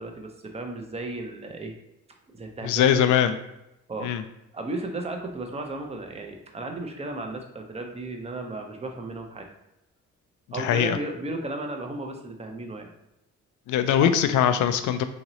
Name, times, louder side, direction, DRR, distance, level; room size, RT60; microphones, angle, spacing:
voice 1, 0.0-1.7 2.3-3.0 3.9-4.1 4.5-9.5 10.5-12.9 14.0-14.1, right 2 dB, 20° right, 3 dB, 0.7 m, -34 dB
voice 2, 2.6-3.4 4.0-4.2 10.6-11.0 13.7-15.0, left 9 dB, 80° left, 9 dB, 0.5 m, -21 dB
3.0 x 2.9 x 3.9 m, 0.88 s
cardioid pair, 90°, 30 cm